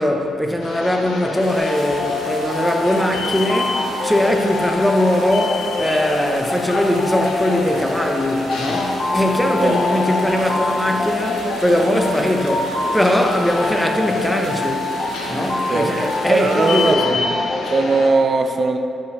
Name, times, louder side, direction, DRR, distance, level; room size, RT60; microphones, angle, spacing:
voice 1, 0.0-14.9 15.3-17.2, left 1 dB, 5° left, 3 dB, 0.6 m, -20 dB
sound 1, 0.6-18.1, left 3 dB, 90° left, 0.8 m, -29 dB
sound 2, 1.4-16.9, right 2 dB, 70° right, 1.0 m, -38 dB
sound 3, 1.6-17.9, left 2 dB, 50° left, 0.9 m, -26 dB
voice 2, 16.3-17.2 17.6-18.8, right 3 dB, 45° right, 5 dB, 0.4 m, -19 dB
5.3 x 5.0 x 5.3 m, 2.7 s
cardioid pair, 105°, 0 cm